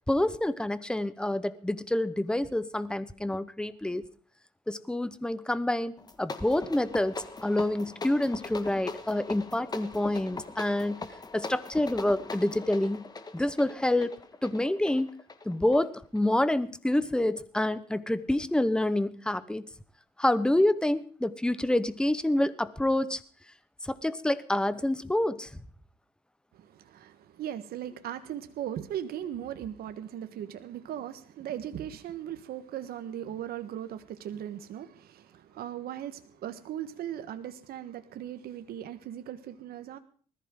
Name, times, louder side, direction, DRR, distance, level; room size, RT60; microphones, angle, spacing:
voice 1, 0.1-4.0 4.7-11.0 11.3-13.0 13.3-15.2 15.4-19.7 20.2-23.2 23.8-25.5, left 1 dB, 5° left, 15 dB, 1.0 m, -27 dB
sound 1, 6.0-16.3, left 3 dB, 25° left, 1.6 m, -41 dB
voice 2, 26.5-40.0, right 10 dB, 65° right, 9 dB, 1.5 m, -38 dB
20.5 x 14.0 x 3.8 m, 0.43 s
cardioid pair, 110°, 17 cm